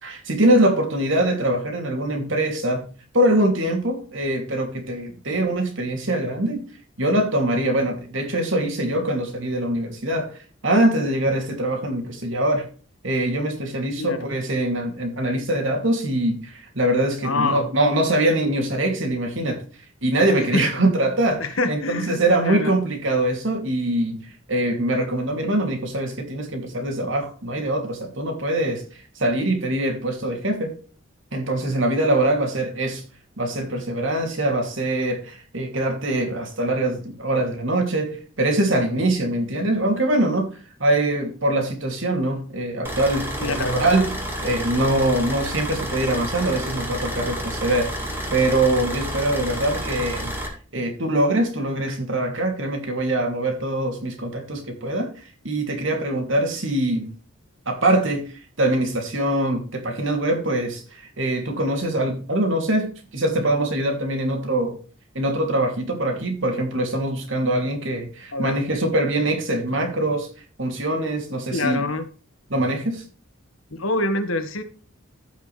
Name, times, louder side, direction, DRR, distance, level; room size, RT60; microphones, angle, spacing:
voice 1, 0.0-2.9 3.1-6.6 7.0-10.3 10.6-12.7 13.0-19.6 20.0-30.8 31.3-33.0 33.4-40.5 40.8-44.1 44.4-47.9 48.3-50.3 50.7-57.1 57.7-64.8 65.1-70.3 70.6-71.8 72.5-73.0, right 1 dB, 65° right, 2.8 m, -23 dB
voice 2, 17.2-17.7 20.5-20.6 21.4-22.7 43.4-43.8 68.3-68.6 71.5-72.1 73.7-74.6, left 2 dB, 85° left, 1.6 m, -25 dB
sound 1, 42.8-50.5, equal, 10° right, 2.5 m, -30 dB
15.0 x 5.8 x 3.3 m
head